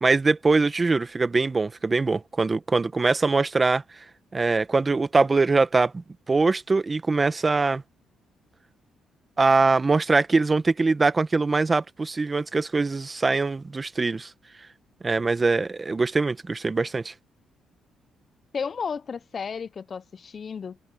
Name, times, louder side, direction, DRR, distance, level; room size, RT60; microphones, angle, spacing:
voice 1, 0.0-3.8 4.3-7.8 9.4-14.3 15.0-17.1, right 3 dB, 25° right, 1.3 m, -22 dB
voice 2, 18.5-20.9, left 6 dB, 45° left, 0.8 m, -33 dB
cardioid pair, 90°, 0 cm